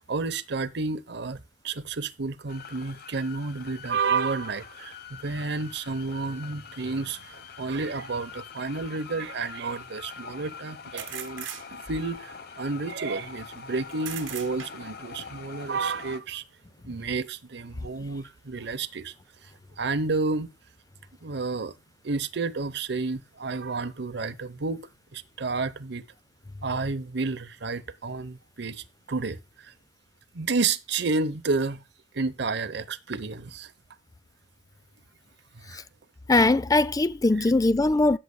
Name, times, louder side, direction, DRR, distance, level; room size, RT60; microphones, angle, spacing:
voice 1, 0.1-11.5 11.8-16.4 16.8-19.1 19.4-19.5 19.8-20.5 21.2-21.8 22.0-24.8 25.1-26.0 26.6-29.7 30.3-31.8 32.1-33.7 35.5-35.8 37.4-37.5, right 4 dB, 60° right, 0.8 m, -31 dB
sound 1, 2.5-16.2, left 6 dB, 55° left, 0.9 m, -44 dB
sound 2, 8.6-8.7 11.0-12.1 14.0-15.0, right 11 dB, 85° right, 1.0 m, -39 dB
voice 2, 36.3-38.2, left 2 dB, 20° left, 0.4 m, -21 dB
16.5 x 6.4 x 2.2 m
head